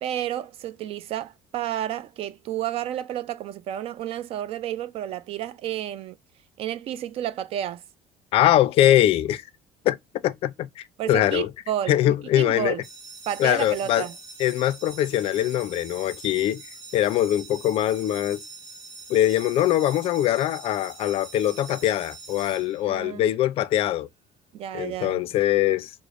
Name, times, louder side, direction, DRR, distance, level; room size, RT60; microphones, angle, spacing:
voice 1, 0.0-6.2 6.6-7.8 11.0-12.8 13.3-14.1 22.9-23.3 24.5-25.2, right 11 dB, 45° right, 0.4 m, -31 dB
voice 2, 8.3-9.4 9.8-10.0 10.2-11.5 11.9-12.8 13.4-14.0 14.4-16.6 16.9-18.4 19.1-24.1 24.7-25.9, left 13 dB, 45° left, 0.4 m, -22 dB
sound 1, 12.8-23.2, right 3 dB, 25° right, 1.2 m, -44 dB
4.9 x 2.0 x 2.4 m
cardioid pair, 155°, 13 cm